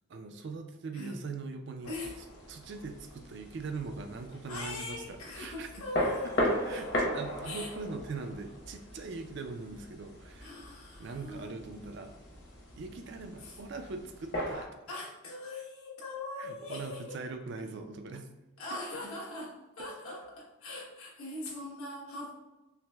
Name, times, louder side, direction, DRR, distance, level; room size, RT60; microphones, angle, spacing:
voice 1, 0.1-1.9 2.5-5.7 6.2-6.8 7.1-10.5 11.0-12.1 12.7-14.7 16.4-18.3, right 3 dB, 55° right, 6 dB, 0.4 m, -41 dB
sound 1, 1.8-14.7, equal, 55° left, 1.0 m, -38 dB
voice 2, 4.5-6.8 7.4-7.7 10.4-11.5 13.4-13.6 14.9-17.2 18.6-22.3, left 2 dB, 85° left, -5 dB, 1.2 m, -41 dB
5.7 x 2.0 x 2.3 m, 1.0 s
head